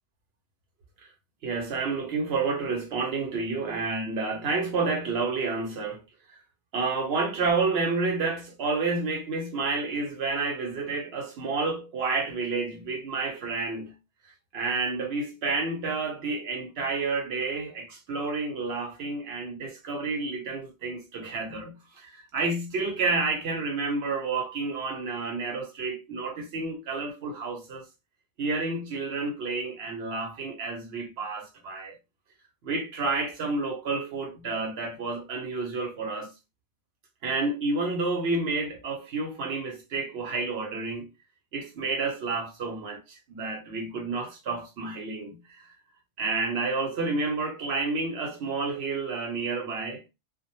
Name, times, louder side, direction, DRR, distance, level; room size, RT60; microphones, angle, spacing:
voice 1, 1.4-6.0 6.7-13.9 14.5-27.9 28.4-31.9 32.6-36.3 37.2-41.1 41.5-45.8 46.2-50.0, right 3 dB, 65° right, 0.8 m, -30 dB
2.1 x 2.0 x 2.9 m
omnidirectional pair, 1.2 m